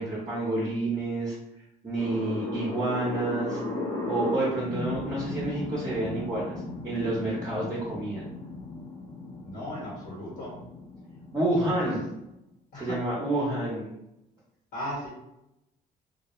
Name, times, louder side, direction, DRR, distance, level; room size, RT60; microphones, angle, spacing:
voice 1, 0.0-1.4 1.8-3.6 4.1-6.5 6.8-8.2 11.3-12.0 12.7-13.9, right 2 dB, 20° right, -7 dB, 0.7 m, -29 dB
sound 1, 2.0-12.3, left 2 dB, 20° left, 0.8 m, -36 dB
voice 2, 9.4-10.6 11.6-12.0 12.7-13.0 14.7-15.1, equal, 70° left, -6 dB, 1.1 m, -37 dB
2.3 x 2.1 x 2.9 m, 0.87 s
cardioid pair, 110°, 17 cm